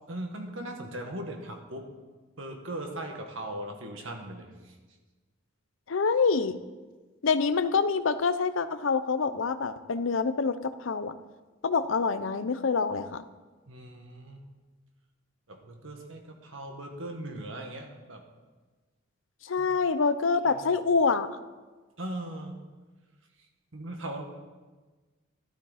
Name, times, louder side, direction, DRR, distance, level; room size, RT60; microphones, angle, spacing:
voice 1, 0.1-1.9 2.4-5.0 13.7-14.4 15.5-18.2 19.6-19.7 20.4-20.6 22.0-22.6 23.4-24.2, right 1 dB, 90° right, 3 dB, 1.8 m, -39 dB
voice 2, 5.9-6.6 7.2-11.2 11.6-13.2 19.4-21.3, left 5 dB, 90° left, 13 dB, 0.6 m, -26 dB
12.5 x 12.5 x 4.2 m, 1.3 s
head